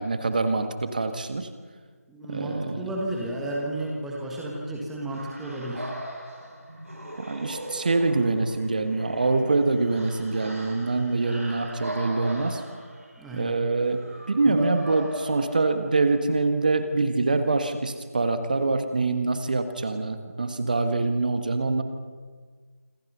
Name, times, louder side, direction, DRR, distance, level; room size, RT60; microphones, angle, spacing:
voice 1, 0.0-1.5 2.2-2.9 7.2-12.6 13.3-21.8, right 3 dB, 30° right, 9 dB, 1.5 m, -25 dB
voice 2, 2.1-5.9 13.2-13.6 14.4-14.7, right 1 dB, ahead, -3 dB, 1.5 m, -32 dB
sound 1, 5.1-16.2, right 1 dB, 65° right, 8.0 m, -39 dB
27.0 x 25.0 x 5.6 m, 1.5 s
figure-of-eight pair, 165°, 8 cm